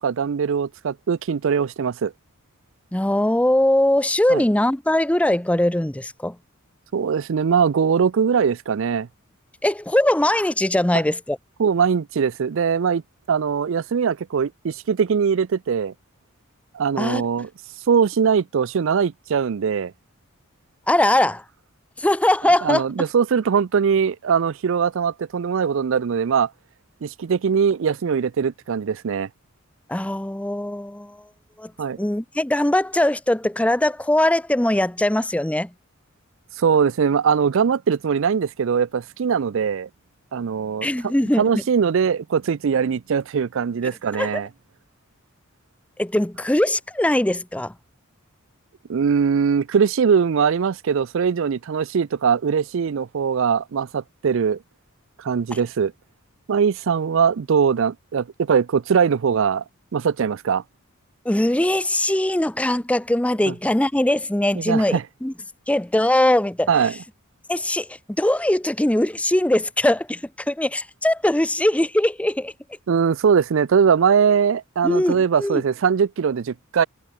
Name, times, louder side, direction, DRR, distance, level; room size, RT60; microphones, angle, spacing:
voice 1, 0.0-2.1 4.3-4.4 6.9-9.1 11.6-13.0 13.3-15.9 16.7-17.5 17.9-19.9 22.6-26.5 27.0-29.3 31.8-32.0 36.6-39.9 40.3-40.9 41.4-44.5 48.9-54.6 55.2-55.9 56.5-59.6 59.9-60.6 63.5-63.6 64.6-65.0 66.7-66.9 72.9-76.9, right 6 dB, 65° right, 0.4 m, -21 dB
voice 2, 2.9-6.4 9.6-11.4 17.0-17.2 20.9-21.4 22.0-22.8 29.9-31.2 31.6-31.7 32.0-35.7 40.8-41.6 44.2-44.4 46.0-47.7 61.2-65.3 65.7-66.7 67.5-72.5 74.8-75.6, left 1 dB, 5° left, 0.6 m, -21 dB
head